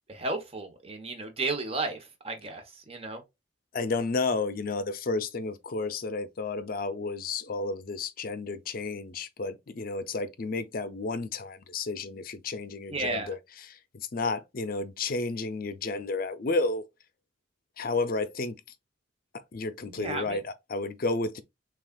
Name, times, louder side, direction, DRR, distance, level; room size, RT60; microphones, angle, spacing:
voice 1, 0.1-3.2 12.9-13.3 19.9-20.4, right 2 dB, 30° right, 0.9 m, -33 dB
voice 2, 3.7-13.4 13.7-16.8 17.8-18.6 19.5-21.4, left 3 dB, 50° left, 0.5 m, -32 dB
6.1 x 2.4 x 2.2 m
head